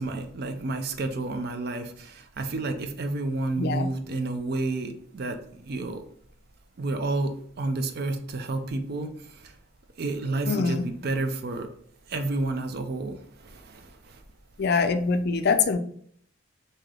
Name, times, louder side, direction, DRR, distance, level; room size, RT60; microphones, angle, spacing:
voice 1, 0.0-5.4 5.6-6.0 6.8-9.1 10.0-11.7 12.1-13.2, right 2 dB, 50° right, 7 dB, 0.4 m, -30 dB
voice 2, 3.6-3.9 10.5-10.9 14.6-15.8, left 4 dB, 50° left, 8 dB, 0.4 m, -24 dB
3.2 x 2.8 x 3.7 m, 0.62 s
head